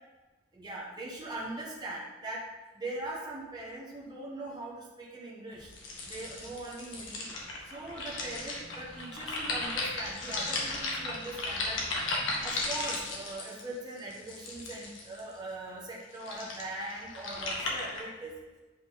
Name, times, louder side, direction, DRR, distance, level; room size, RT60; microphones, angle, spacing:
voice 1, 0.5-2.4 2.7-5.7 6.0-7.3 7.6-12.1 12.4-18.4, right 2 dB, 20° right, -5 dB, 1.5 m, -41 dB
sound 1, 5.5-12.0, left 1 dB, 55° left, 1.8 m, -55 dB
sound 2, 5.7-15.3 16.0-18.0, left 2 dB, 80° left, 1.5 m, -35 dB
8.2 x 5.0 x 4.1 m, 1.2 s
head